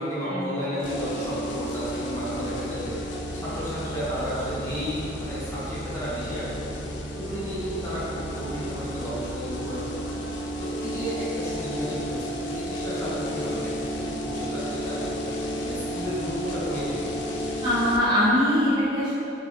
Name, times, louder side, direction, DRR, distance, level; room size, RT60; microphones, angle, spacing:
voice 1, 0.0-3.0 3.3-6.5 7.1-9.9 10.6-15.0 15.6-17.3, equal, 15° left, -10 dB, 0.8 m, -32 dB
sound 1, 0.8-18.0, equal, 85° left, 0.3 m, -32 dB
voice 2, 17.6-19.1, equal, 25° right, -10 dB, 0.5 m, -22 dB
2.8 x 2.6 x 3.2 m, 3.0 s
head